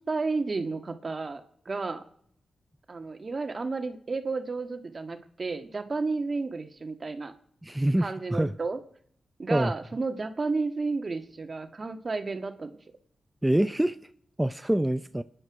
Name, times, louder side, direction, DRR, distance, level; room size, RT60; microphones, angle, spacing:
voice 1, 0.1-1.4 1.6-2.0 2.9-7.3 8.0-8.8 9.4-12.8, right 3 dB, 50° right, 1.7 m, -32 dB
voice 2, 7.6-8.5 9.5-9.7 13.4-14.0 14.4-15.2, right 1 dB, 15° right, 0.6 m, -25 dB
27.5 x 9.9 x 4.8 m
supercardioid pair, 45°, 0 cm